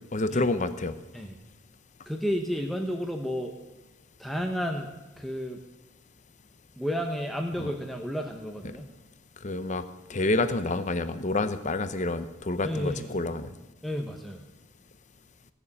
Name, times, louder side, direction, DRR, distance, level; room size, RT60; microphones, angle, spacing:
voice 1, 0.1-1.0 7.6-7.7 8.6-8.7 9.4-9.8 10.1-13.5, left 2 dB, 35° left, 11 dB, 0.7 m, -28 dB
voice 2, 2.1-3.5 4.2-5.6 6.8-8.9 12.6-13.1 13.8-14.4, equal, ahead, 3 dB, 0.9 m, -32 dB
16.5 x 6.9 x 8.7 m, 1.0 s
head